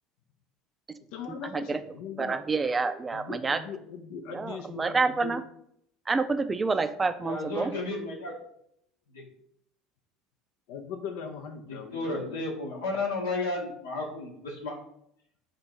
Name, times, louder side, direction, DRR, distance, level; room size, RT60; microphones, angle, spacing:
voice 1, 1.1-2.4 3.1-5.4 10.7-12.4, left 6 dB, 70° left, 5 dB, 0.5 m, -40 dB
voice 2, 2.2-3.6 4.3-5.4 6.1-7.7, right 4 dB, 25° right, 10 dB, 0.4 m, -28 dB
voice 3, 7.2-8.3 9.1-9.2 11.9-14.8, left 2 dB, 85° left, -3 dB, 0.9 m, -32 dB
4.4 x 2.6 x 4.4 m, 0.72 s
hypercardioid pair, 75°, 0 cm